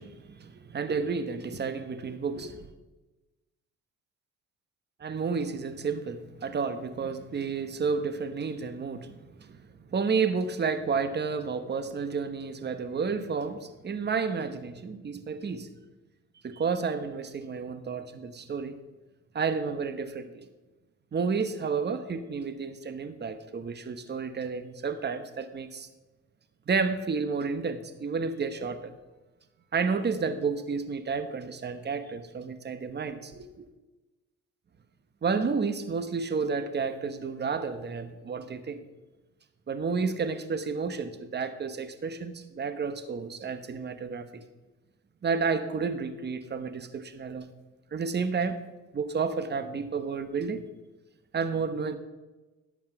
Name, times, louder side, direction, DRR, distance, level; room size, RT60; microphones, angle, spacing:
voice 1, 0.0-2.7 5.0-9.6 9.9-15.7 16.4-18.8 19.3-20.5 21.1-25.9 26.7-28.9 29.7-33.7 35.2-38.8 39.7-44.4 45.2-47.5 47.9-48.6 48.9-50.6 51.3-52.0, right 5 dB, 35° right, 11 dB, 1.0 m, -31 dB
11.5 x 7.3 x 6.0 m, 1.1 s
cardioid pair, 90°, 30 cm